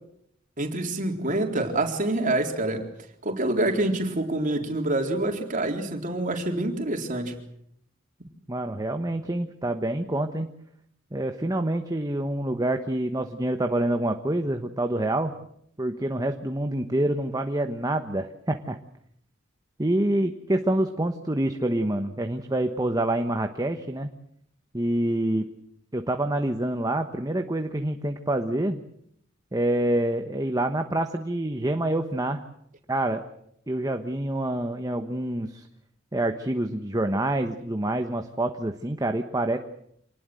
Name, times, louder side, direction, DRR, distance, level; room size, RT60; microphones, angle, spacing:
voice 1, 0.6-2.9 3.2-7.4, right 2 dB, 40° right, 3 dB, 3.9 m, -26 dB
voice 2, 8.5-10.5 11.1-15.3 15.8-18.8 19.8-24.1 24.7-25.5 25.9-28.8 29.5-32.4 32.9-33.2 33.7-35.7 36.1-39.6, right 1 dB, 20° right, 6 dB, 1.2 m, -27 dB
27.0 x 19.5 x 7.8 m, 0.71 s
head